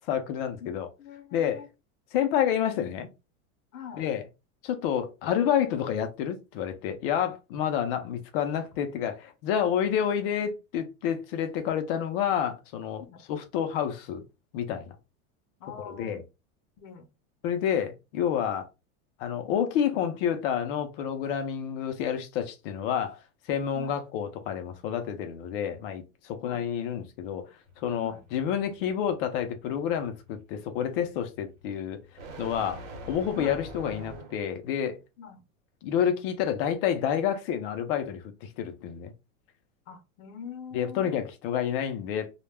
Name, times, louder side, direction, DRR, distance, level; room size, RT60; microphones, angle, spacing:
voice 1, 0.1-0.9 1.3-1.6 2.1-3.1 4.0-4.2 4.6-13.0 13.3-14.2 14.5-15.0 15.9-16.2 17.4-18.7 19.2-23.2 23.5-27.5 27.8-32.0 32.4-32.8 33.1-35.0 35.8-39.1 40.7-42.3, left 9 dB, 45° left, 0.5 m, -29 dB
voice 2, 0.6-1.7 3.7-4.0 13.0-13.2 15.6-16.2 16.8-17.1 23.7-24.0 26.4-26.6 28.0-28.2 33.3-33.6 35.2-35.4 39.9-41.2, left 7 dB, 85° left, 0.7 m, -44 dB
sound 1, 27.7-34.6, right 1 dB, 85° right, 1.0 m, -45 dB
2.2 x 2.1 x 3.2 m
supercardioid pair, 170°, 39 cm